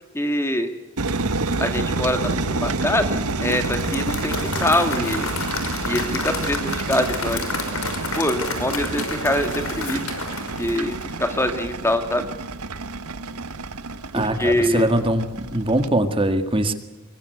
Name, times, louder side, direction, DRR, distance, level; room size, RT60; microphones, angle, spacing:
voice 1, 0.1-0.7 1.6-5.3 5.8-7.5 8.1-10.0 10.6-12.2 14.2-14.9, left 1 dB, 10° left, 7 dB, 1.9 m, -24 dB
sound 1, 1.0-15.9, right 3 dB, 90° right, 1.5 m, -28 dB
Applause / Crowd, 3.3-11.5, left 4 dB, 70° left, 5.5 m, -31 dB
voice 2, 14.1-16.7, right 1 dB, 25° right, 8 dB, 2.0 m, -22 dB
24.5 x 23.5 x 8.0 m, 1.0 s
head